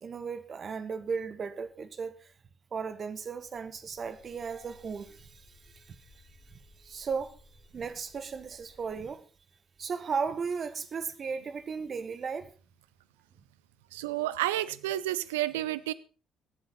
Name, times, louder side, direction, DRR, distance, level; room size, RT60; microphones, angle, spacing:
voice 1, 0.0-2.3 2.7-7.4 7.7-9.2 9.8-12.5, right 5 dB, 40° right, 1.2 m, -36 dB
sound 1, 3.2-9.1, left 2 dB, 45° left, 6.7 m, -60 dB
voice 2, 13.9-15.9, right 14 dB, 70° right, 0.5 m, -30 dB
19.5 x 7.9 x 4.1 m
figure-of-eight pair, 45°, 0 cm